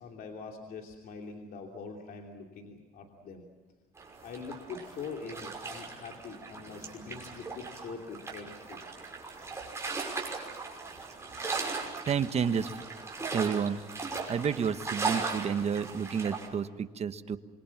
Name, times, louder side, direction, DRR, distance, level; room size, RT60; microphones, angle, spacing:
voice 1, 0.0-3.5 4.2-8.8, left 5 dB, 60° left, 2 dB, 3.1 m, -43 dB
sound 1, 4.0-16.5, right 4 dB, 15° right, 5.8 m, -38 dB
voice 2, 12.0-12.8 13.3-13.8 14.3-17.4, right 7 dB, 40° right, 10 dB, 1.3 m, -30 dB
27.0 x 23.0 x 7.3 m, 1.3 s
cardioid pair, 110°, 17 cm